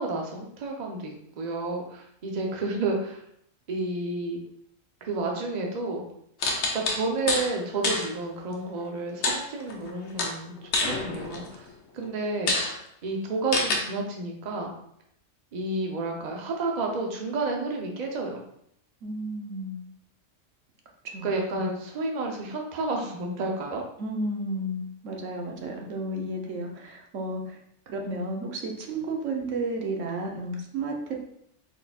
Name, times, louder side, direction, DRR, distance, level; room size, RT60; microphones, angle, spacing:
voice 1, 0.0-3.2 3.7-4.4 5.0-6.0 6.7-10.6 10.9-11.7 11.9-12.6 13.0-14.7 15.5-18.4 21.2-23.8, right 3 dB, 45° right, 1 dB, 0.7 m, -30 dB
sound 1, 6.4-7.5 7.8-8.1 9.2-9.9 10.2-11.6 12.0-12.1 12.5-12.7 13.5-13.8, left 2 dB, 65° left, 1.0 m, -27 dB
voice 2, 19.0-19.8 21.1-21.3 21.6-21.7 24.0-27.6 27.9-31.3, right 2 dB, 75° right, 1 dB, 1.1 m, -32 dB
4.2 x 4.1 x 2.3 m, 0.72 s
omnidirectional pair, 1.3 m